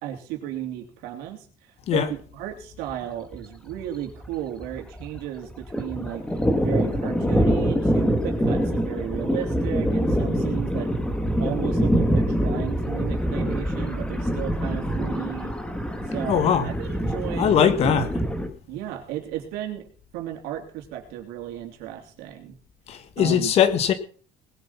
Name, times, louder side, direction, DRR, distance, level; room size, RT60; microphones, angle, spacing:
voice 1, 0.0-6.2 6.5-10.9 11.4-15.5 16.1-17.7 18.7-19.8 20.1-22.5 23.2-23.5, right 11 dB, 75° right, 3.1 m, -34 dB
Thunder, 2.9-3.0 3.3-3.4 3.7-5.2 5.5-18.5, equal, 5° left, 1.7 m, -25 dB
voice 2, 16.3-16.7 17.4-18.2 22.9-23.9, left 8 dB, 40° left, 1.4 m, -20 dB
20.0 x 7.7 x 5.7 m
cardioid pair, 175°, 16 cm